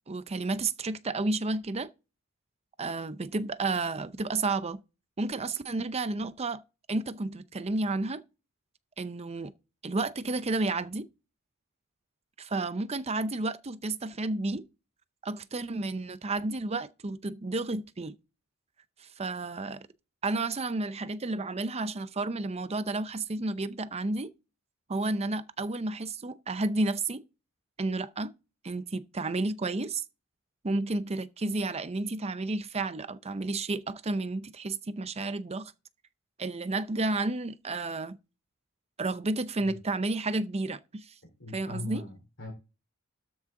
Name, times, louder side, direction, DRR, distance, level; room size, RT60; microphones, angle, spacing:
voice 1, 0.1-1.9 2.8-4.8 5.2-6.6 6.9-8.2 9.0-9.5 9.8-11.1 12.4-14.6 15.2-18.2 19.0-19.9 20.2-24.3 24.9-27.2 27.8-28.3 28.6-30.0 30.6-35.7 36.4-38.2 39.0-41.1 41.5-42.0, right 2 dB, 30° right, 0.6 m, -31 dB
voice 2, 41.4-42.5, left 2 dB, 60° left, 3.7 m, -40 dB
13.0 x 6.3 x 3.8 m
head